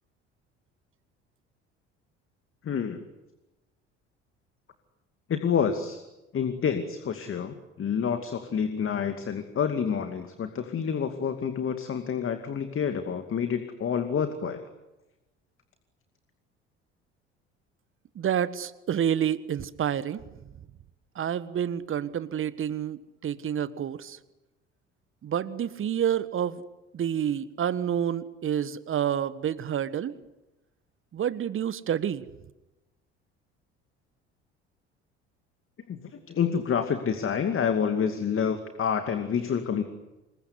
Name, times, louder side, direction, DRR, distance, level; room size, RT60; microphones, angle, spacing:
voice 1, 2.6-3.0 5.3-6.0 6.3-14.6 35.9-36.0 36.3-39.8, left 7 dB, 35° left, 7 dB, 2.4 m, -28 dB
voice 2, 18.1-20.4 21.1-24.2 25.2-26.6 26.9-30.1 31.1-32.2, right 9 dB, 35° right, 16 dB, 1.5 m, -29 dB
27.0 x 23.0 x 9.7 m, 1.0 s
figure-of-eight pair, 55°, 34 cm